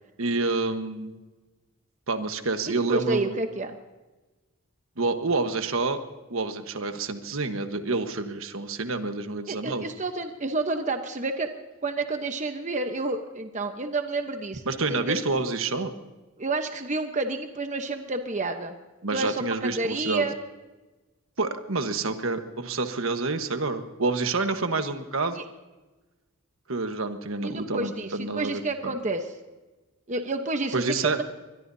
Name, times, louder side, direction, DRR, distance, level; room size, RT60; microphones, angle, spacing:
voice 1, 0.2-1.1 2.1-3.4 5.0-6.0 6.3-9.8 14.7-15.9 19.0-20.3 21.4-25.4 26.7-29.0 30.7-31.2, right 3 dB, 70° right, 7 dB, 1.3 m, -28 dB
voice 2, 2.7-3.8 9.5-11.5 11.8-14.6 14.9-15.2 16.4-18.8 19.1-20.4 25.4-25.5 27.4-29.3 30.1-31.2, right 2 dB, 35° right, 6 dB, 1.0 m, -29 dB
24.0 x 21.5 x 2.8 m, 1.2 s
head